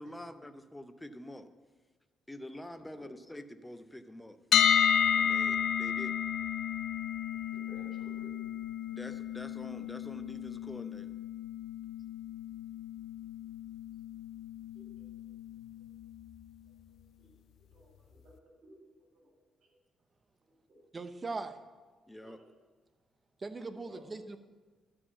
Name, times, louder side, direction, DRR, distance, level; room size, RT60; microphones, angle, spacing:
voice 1, 0.0-1.5 2.3-4.4 5.1-6.3 8.9-11.1 22.1-22.4, left 1 dB, 10° left, 9 dB, 0.7 m, -46 dB
voice 2, 2.8-3.1 7.5-8.4 14.7-15.1 15.8-15.9 16.9-19.8 20.4-20.8 22.2-22.5 23.7-24.1, equal, 65° right, 1 dB, 3.3 m, -57 dB
sound 1, 4.5-16.4, left 9 dB, 70° left, 0.4 m, -32 dB
voice 3, 20.9-21.6 23.4-24.4, right 3 dB, 30° right, 9 dB, 0.8 m, -39 dB
12.0 x 5.0 x 7.0 m, 1.3 s
cardioid pair, 90°, 0 cm